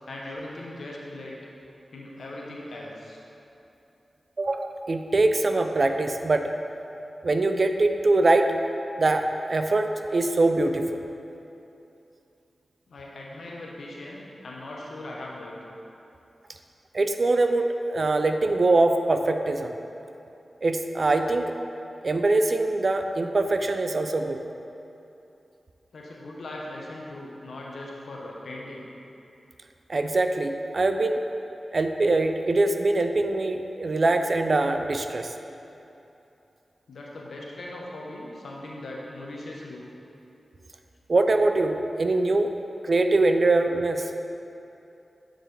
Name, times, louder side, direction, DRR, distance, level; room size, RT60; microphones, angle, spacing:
voice 1, 0.1-1.4 1.9-3.2 12.9-15.6 25.9-28.9 36.9-39.9, left 1 dB, 80° left, -3 dB, 0.8 m, -39 dB
voice 2, 4.4-6.5 7.2-8.6 9.0-11.0 16.9-19.8 20.6-21.5 22.0-24.4 29.9-31.2 31.7-35.3 41.1-42.5 42.8-44.1, right 2 dB, 60° right, 6 dB, 0.4 m, -23 dB
9.1 x 3.8 x 3.3 m, 2.9 s
cardioid pair, 40°, 0 cm